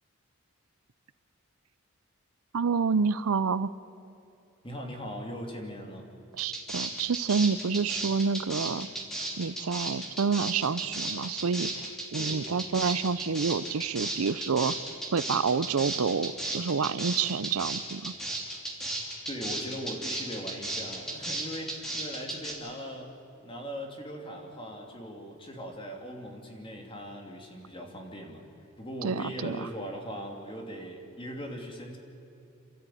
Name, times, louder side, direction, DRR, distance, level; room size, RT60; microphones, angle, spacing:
voice 1, 2.5-3.7 6.3-8.9 9.4-11.9 12.1-14.8 15.1-18.1 29.0-29.7, right 5 dB, 75° right, 16 dB, 0.6 m, -28 dB
voice 2, 4.6-6.1 12.2-12.4 19.3-23.2 23.4-28.4 28.8-32.0, equal, 25° left, 2 dB, 2.6 m, -39 dB
sound 1, 6.4-22.5, right 2 dB, ahead, 3.0 m, -34 dB
29.0 x 13.0 x 9.2 m, 2.8 s
head